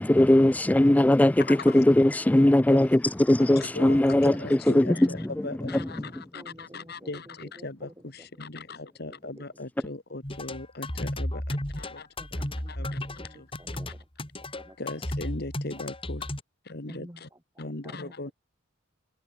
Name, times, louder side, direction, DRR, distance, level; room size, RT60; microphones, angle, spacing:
voice 1, 0.0-5.0, left 1 dB, 10° left, 0.3 m, -20 dB
voice 2, 1.5-1.8 3.4-12.4 12.7-13.0 13.3-13.5 14.8-16.2 16.6-17.3 17.6-18.3, left 2 dB, 55° left, 1.8 m, -39 dB
voice 3, 4.3-4.9 5.2-5.3 5.8-8.5 9.1-9.4 12.2-13.9 14.5-14.9 16.9-18.1, equal, 15° right, 7.7 m, -50 dB
sound 1, 10.2-16.4, left 1 dB, 30° left, 4.6 m, -34 dB
head